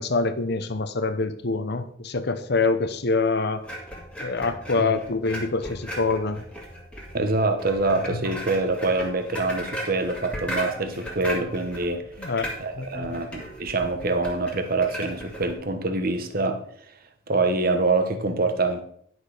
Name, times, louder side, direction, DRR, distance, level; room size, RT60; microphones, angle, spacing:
voice 1, 0.0-3.6 4.2-6.4 12.2-12.5 12.8-13.2, left 3 dB, 50° left, 10 dB, 0.8 m, -25 dB
sound 1, 3.6-15.5, equal, 5° left, 1.9 m, -36 dB
voice 2, 7.1-12.0 12.6-16.6 17.3-18.8, right 3 dB, 45° right, 7 dB, 1.0 m, -25 dB
10.5 x 6.3 x 4.9 m, 0.64 s
head